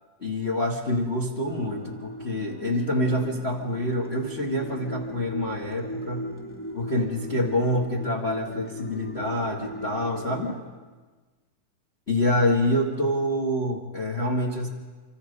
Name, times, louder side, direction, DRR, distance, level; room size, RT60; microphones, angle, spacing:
voice 1, 0.2-6.3 6.7-10.6 12.1-14.7, left 1 dB, 25° left, 1 dB, 1.4 m, -26 dB
sound 1, 1.4-10.6, equal, 5° left, 2.1 m, -38 dB
26.5 x 25.0 x 5.4 m, 1.3 s
omnidirectional pair, 3.7 m